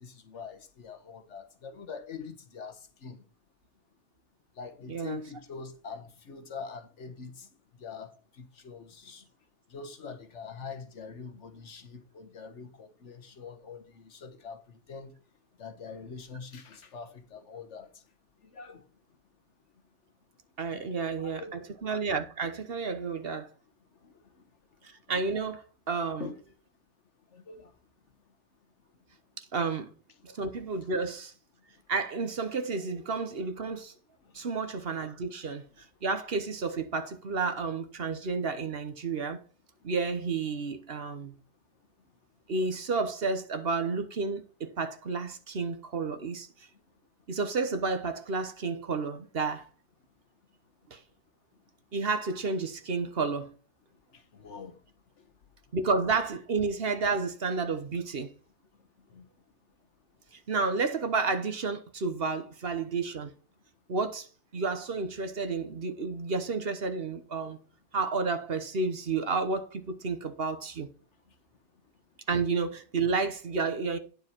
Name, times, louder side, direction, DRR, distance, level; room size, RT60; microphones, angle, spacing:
voice 1, 0.0-2.8 3.0-3.2 4.6-7.5 7.8-9.2 9.7-14.6 14.9-15.1 15.6-17.9 18.5-18.8 20.7-21.6 26.2-26.4 27.3-27.7 54.4-54.7 59.1-59.3 72.3-72.4, left 5 dB, 75° left, 1.5 m, -44 dB
voice 2, 4.9-5.2 20.6-23.5 25.1-26.3 29.4-29.9 30.2-31.3 31.9-33.9 34.3-39.4 39.8-41.3 42.5-46.5 47.3-49.6 50.9-51.0 51.9-53.5 55.7-58.3 60.3-63.3 63.9-64.3 64.5-67.6 67.9-70.9 72.3-74.0, right 4 dB, 55° right, 1.2 m, -31 dB
9.4 x 7.2 x 4.4 m
omnidirectional pair, 1.2 m